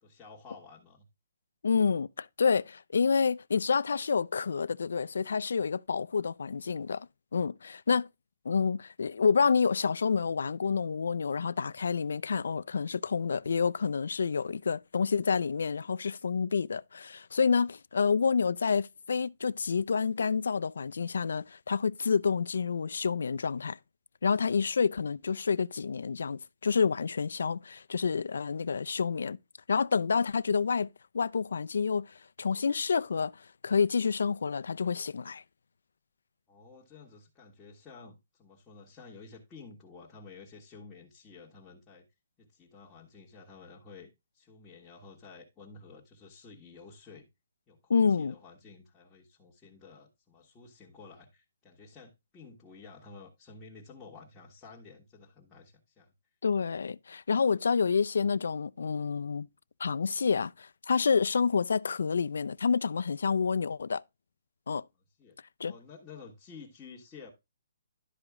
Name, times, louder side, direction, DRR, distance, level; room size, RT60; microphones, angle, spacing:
voice 1, 0.0-1.1 36.5-42.1 42.4-47.3 47.7-56.1 65.2-67.3, left 4 dB, 10° left, 1.6 m, -52 dB
voice 2, 1.6-8.1 8.4-23.8 24.2-29.4 29.7-30.9 31.1-33.4 33.6-35.4 47.9-48.3 56.4-59.5 59.8-64.0 64.7-64.8 65.6-65.7, left 5 dB, 80° left, 0.4 m, -28 dB
12.0 x 5.0 x 3.6 m
hypercardioid pair, 170°, 0 cm